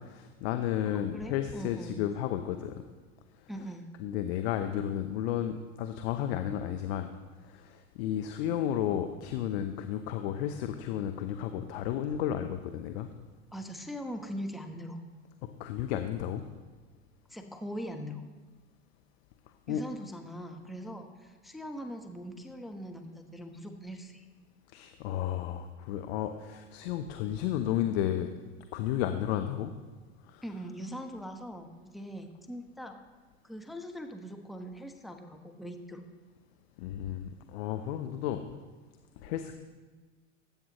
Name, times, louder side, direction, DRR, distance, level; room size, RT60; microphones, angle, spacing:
voice 1, 0.0-2.7 4.0-7.1 7.4-13.1 15.6-16.4 19.7-19.8 24.7-28.3 28.7-29.7 30.3-30.4 36.8-38.4 39.2-39.5, left 10 dB, 60° left, 7 dB, 0.9 m, -32 dB
voice 2, 0.9-2.0 3.5-3.9 13.5-15.0 17.3-18.2 19.7-24.3 30.4-33.0 33.4-36.1, equal, ahead, 4 dB, 1.0 m, -41 dB
19.0 x 8.9 x 3.1 m, 1.3 s
hypercardioid pair, 90°, 36 cm